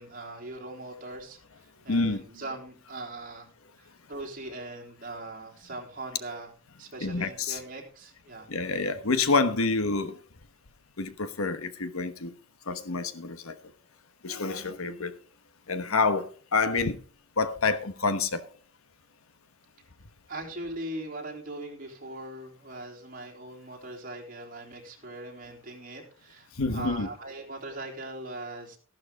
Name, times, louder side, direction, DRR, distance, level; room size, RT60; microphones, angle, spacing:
voice 1, 0.0-1.4 1.8-3.5 3.8-6.5 6.8-8.5 20.3-28.8, right 2 dB, 40° right, 3.5 m, -40 dB
voice 2, 1.9-2.2 7.0-7.6 8.5-10.1 11.0-12.3 12.7-13.5 14.2-15.1 15.7-17.0 17.4-18.4 26.6-27.1, left 3 dB, 80° left, 1.1 m, -27 dB
13.5 x 12.0 x 3.7 m
head